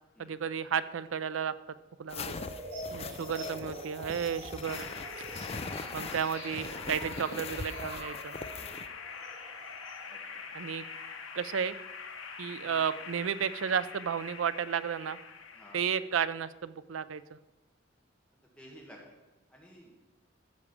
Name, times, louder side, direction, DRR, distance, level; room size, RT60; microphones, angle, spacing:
voice 1, 0.2-1.5 2.0-2.5 2.9-4.9 5.9-8.4 10.5-10.8 11.3-11.8 12.4-15.2 15.7-17.4, right 7 dB, 80° right, 15 dB, 0.5 m, -33 dB
sound 1, 2.1-8.9, left 4 dB, 30° left, 0.5 m, -42 dB
sound 2, 2.2-10.2, right 1 dB, 45° right, 3.7 m, -45 dB
sound 3, 4.6-16.1, left 5 dB, 85° left, 1.2 m, -44 dB
voice 2, 8.6-8.9 10.1-10.4 12.6-12.8 15.5-15.8 18.6-19.0 19.5-19.9, equal, 5° left, -3 dB, 1.8 m, -53 dB
13.5 x 4.9 x 7.0 m, 1.1 s
head